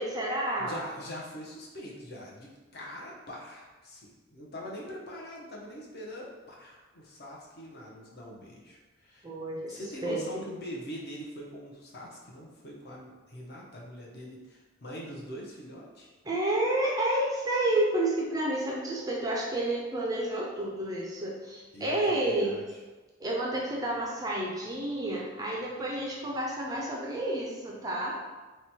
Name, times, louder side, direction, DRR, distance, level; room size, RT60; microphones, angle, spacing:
voice 1, 0.0-0.8 9.2-10.4 16.2-22.5 23.2-28.2, right 1 dB, 20° right, -3 dB, 0.4 m, -30 dB
voice 2, 0.6-9.3 9.7-16.1 21.7-22.8, equal, 50° left, -3 dB, 0.7 m, -43 dB
3.0 x 2.2 x 4.1 m, 1.2 s
head